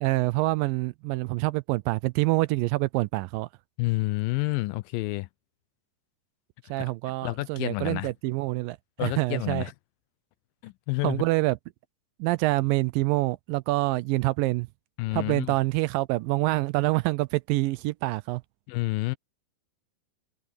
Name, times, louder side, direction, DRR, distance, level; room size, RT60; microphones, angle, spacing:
voice 1, 0.0-3.5 6.7-9.7 11.0-11.6 12.2-14.7 15.1-18.4, right 20 dB, 80° right, 2.2 m, -26 dB
voice 2, 3.8-5.3 6.8-6.9 7.2-8.1 9.0-9.7 10.6-11.2 15.0-15.6 18.7-19.2, left 21 dB, 80° left, 2.3 m, -29 dB
omnidirectional pair, 4.1 m